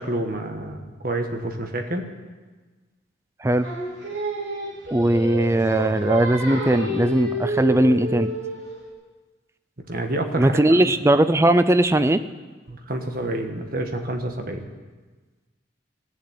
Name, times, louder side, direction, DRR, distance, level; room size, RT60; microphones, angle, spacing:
voice 1, 0.0-2.1 9.9-10.6 12.7-14.7, right 1 dB, 45° right, 4 dB, 1.4 m, -28 dB
Singing, 3.6-8.8, right 1 dB, 70° right, 3.5 m, -30 dB
voice 2, 4.9-8.3 10.4-12.2, right 1 dB, 15° right, 12 dB, 0.4 m, -19 dB
16.0 x 7.5 x 8.8 m, 1.3 s
head